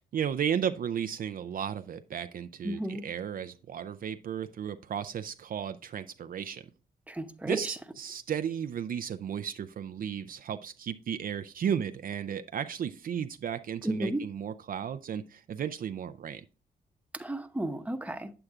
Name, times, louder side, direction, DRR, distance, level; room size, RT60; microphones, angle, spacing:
voice 1, 0.0-6.6 7.5-16.4, right 8 dB, 55° right, 0.4 m, -34 dB
voice 2, 2.6-3.0 7.1-7.8 13.8-14.2 17.1-18.3, right 1 dB, 10° right, 0.9 m, -33 dB
8.5 x 7.8 x 2.4 m
cardioid pair, 70°, 17 cm